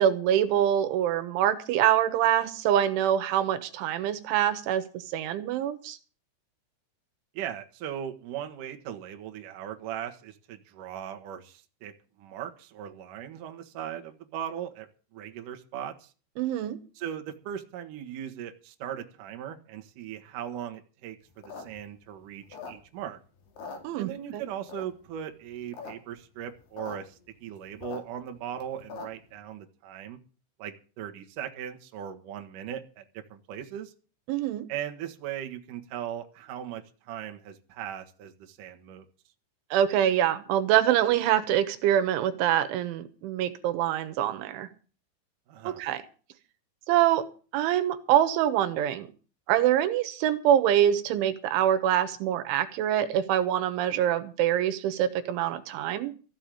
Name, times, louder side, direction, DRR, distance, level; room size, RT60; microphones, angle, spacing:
voice 1, 0.0-6.0 16.4-16.8 23.8-24.4 34.3-34.7 39.7-44.7 45.7-46.0 46.9-47.3 47.5-49.1 49.5-56.1, right 11 dB, 85° right, 9 dB, 3.6 m, -25 dB
voice 2, 7.3-11.9 12.2-16.1 17.0-23.2 24.0-30.2 30.6-33.9 34.7-39.1 45.5-45.8, right 10 dB, 60° right, 4 dB, 2.5 m, -38 dB
sound 1, 21.3-23.1 23.4-24.3 24.7-25.1 25.5-25.9 26.2-26.3 26.4-27.0 27.3-29.3, left 4 dB, 60° left, 4.3 m, -42 dB
15.0 x 6.8 x 9.2 m, 0.37 s
omnidirectional pair, 5.4 m